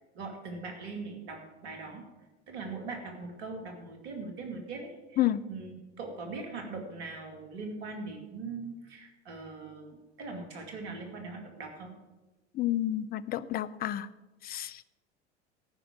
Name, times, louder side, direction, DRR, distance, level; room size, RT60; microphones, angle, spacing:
voice 1, 0.1-2.0 2.5-5.2 5.5-11.9, right 3 dB, 65° right, 4 dB, 2.4 m, -41 dB
voice 2, 12.5-14.1 14.4-14.8, left 13 dB, 25° left, 14 dB, 0.5 m, -30 dB
14.0 x 5.7 x 7.5 m, 1.1 s
figure-of-eight pair, 80°, 35 cm